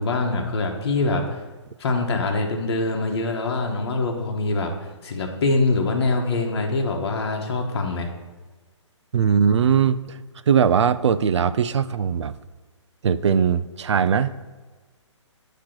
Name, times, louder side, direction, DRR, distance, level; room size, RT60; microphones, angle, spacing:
voice 1, 0.0-1.4 1.8-4.7 5.0-8.1, left 3 dB, 55° left, 2 dB, 1.1 m, -24 dB
voice 2, 9.1-10.2 10.5-12.3 13.0-14.3, right 7 dB, 65° right, 13 dB, 0.4 m, -20 dB
8.5 x 3.0 x 6.0 m, 1.3 s
figure-of-eight pair, 135°, 16 cm